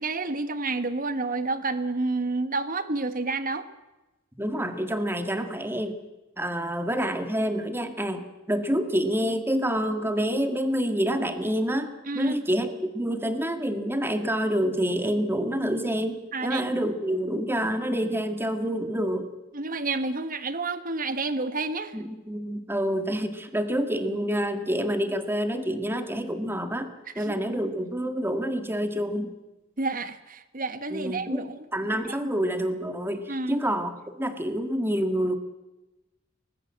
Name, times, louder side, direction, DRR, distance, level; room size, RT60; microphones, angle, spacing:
voice 1, 0.0-3.6 12.1-12.4 16.3-16.6 19.5-22.0 27.2-27.3 29.8-31.6 33.3-33.6, right 3 dB, 45° right, 11 dB, 1.4 m, -29 dB
voice 2, 4.4-6.0 6.4-19.3 21.9-29.3 30.9-35.4, equal, 10° right, 8 dB, 1.8 m, -27 dB
23.5 x 20.0 x 7.4 m, 1.0 s
head